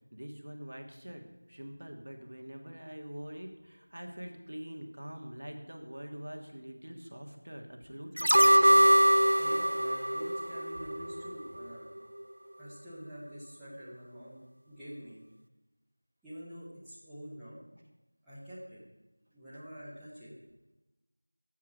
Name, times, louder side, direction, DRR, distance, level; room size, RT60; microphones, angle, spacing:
voice 1, 0.1-8.8, equal, 60° right, 3 dB, 1.4 m, -44 dB
sound 1, 8.2-11.3 11.7-11.8, equal, 80° right, 0.5 m, -23 dB
voice 2, 9.4-11.9 12.6-15.2 16.2-17.6 18.3-18.8 19.3-20.3, equal, ahead, -17 dB, 0.7 m, -46 dB
7.3 x 6.6 x 6.4 m, 1.0 s
figure-of-eight pair, 175°, 0 cm